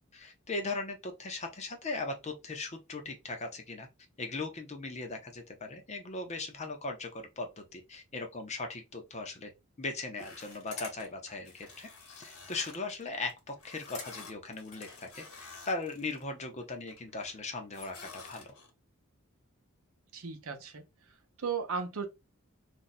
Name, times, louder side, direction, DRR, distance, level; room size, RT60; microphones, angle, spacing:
voice 1, 0.0-3.9 4.2-9.5 9.8-18.5, left 3 dB, 30° left, 0.7 m, -39 dB
sound 1, 10.2-16.2 16.6-17.4 17.7-18.7, left 4 dB, 75° left, 1.1 m, -49 dB
voice 2, 20.1-20.8 21.4-22.1, right 5 dB, 75° right, 0.8 m, -35 dB
2.6 x 2.3 x 4.0 m
head